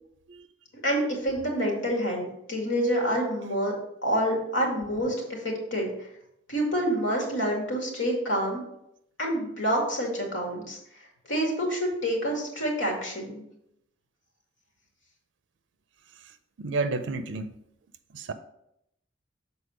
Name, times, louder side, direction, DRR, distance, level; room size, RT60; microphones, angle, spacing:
voice 1, 0.8-3.7 4.0-6.1 6.5-8.6 9.2-13.4, equal, 90° left, 2.3 m, -28 dB
voice 2, 16.6-17.5 18.1-18.3, right 3 dB, 75° right, 0.5 m, -30 dB
6.9 x 4.1 x 4.9 m
head